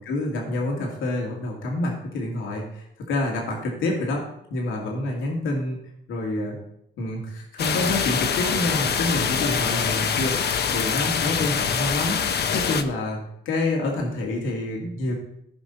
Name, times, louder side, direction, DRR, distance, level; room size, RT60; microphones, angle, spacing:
voice 1, 0.0-5.8 6.1-6.6 7.0-15.1, left 2 dB, 85° left, -1 dB, 2.4 m, -28 dB
sound 1, 7.6-12.8, left 7 dB, 55° left, 0.9 m, -24 dB
16.0 x 5.4 x 4.1 m, 0.75 s
cardioid pair, 90°, 20 cm